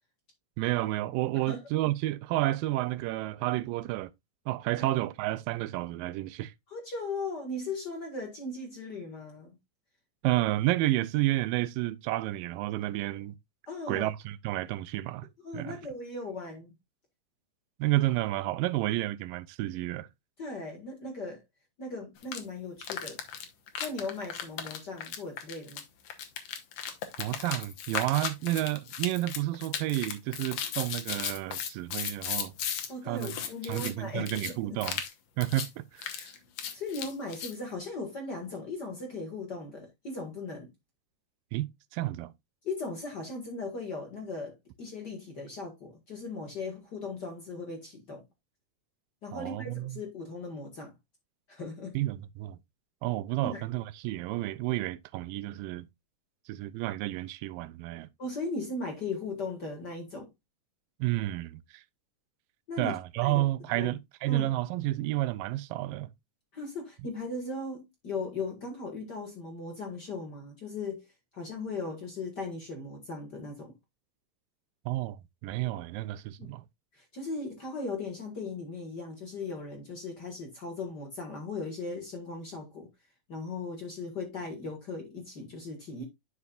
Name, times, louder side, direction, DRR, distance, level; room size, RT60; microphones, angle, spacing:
voice 1, 0.6-4.1 4.5-6.5 10.2-13.4 13.9-15.3 15.5-15.8 17.8-20.1 27.2-32.5 33.1-33.4 33.6-35.0 35.4-36.3 41.5-42.3 49.3-50.0 51.9-52.6 53.0-55.9 56.5-58.1 61.0-61.8 62.8-66.1 74.9-76.6, right 16 dB, 90° right, 2.3 m, -31 dB
voice 2, 6.7-9.6 13.7-14.1 15.4-16.7 20.4-21.4 21.8-23.2 23.8-25.8 32.9-34.8 36.7-40.7 42.6-48.2 49.2-50.9 51.5-52.0 53.4-53.6 58.2-60.3 62.7-63.0 63.2-63.4 63.7-63.9 64.3-64.5 66.5-71.1 71.3-73.7 76.4-76.5 76.9-82.9 83.3-86.0, left 3 dB, 40° left, 1.6 m, -38 dB
sound 1, 22.2-22.4 22.8-32.9 33.2-33.9 34.3-34.5 34.8-35.1 35.4-35.7 36.0-37.5, left 8 dB, 65° left, 1.8 m, -36 dB
10.5 x 5.4 x 2.4 m
omnidirectional pair, 3.9 m